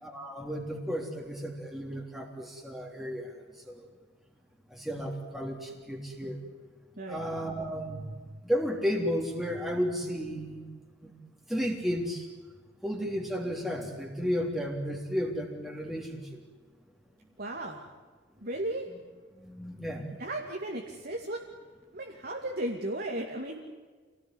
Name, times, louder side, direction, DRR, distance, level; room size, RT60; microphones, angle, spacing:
voice 1, 0.0-3.3 4.7-6.4 7.1-8.1 8.4-10.6 11.0-11.1 11.5-12.2 12.8-16.2 19.4-20.0, equal, ahead, 1 dB, 3.4 m, -33 dB
voice 2, 17.4-17.8 18.4-18.9 20.2-21.4 21.9-23.6, right 1 dB, 50° right, 0 dB, 2.5 m, -35 dB
28.0 x 19.0 x 9.8 m, 1.4 s
head